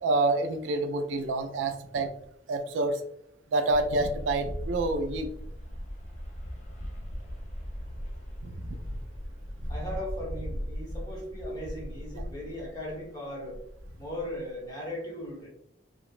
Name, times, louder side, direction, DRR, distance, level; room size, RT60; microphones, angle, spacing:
voice 1, 0.0-2.1 2.5-3.0 3.5-5.3 8.4-8.8, right 2 dB, 85° right, 6 dB, 0.3 m, -27 dB
sound 1, 3.7-13.1 13.4-14.7, equal, 40° left, 0.4 m, -38 dB
voice 2, 9.7-13.6 14.0-15.5, equal, 20° left, -5 dB, 0.9 m, -38 dB
2.9 x 2.0 x 2.4 m, 0.72 s
head